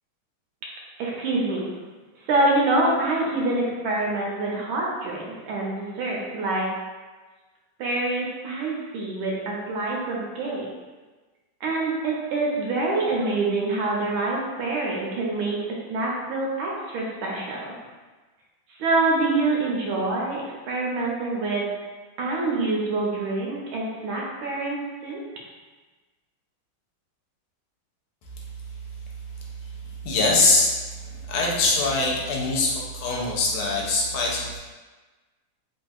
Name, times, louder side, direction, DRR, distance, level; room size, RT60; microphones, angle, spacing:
voice 1, 1.0-1.6 2.3-6.7 7.8-10.7 11.6-15.6 15.9-17.6 18.8-21.7 22.2-25.2, right 2 dB, 80° right, -3 dB, 1.4 m, -26 dB
voice 2, 30.0-30.7 31.0-34.6, left 3 dB, 90° left, -3 dB, 1.5 m, -23 dB
3.5 x 2.6 x 2.3 m, 1.3 s
omnidirectional pair, 2.3 m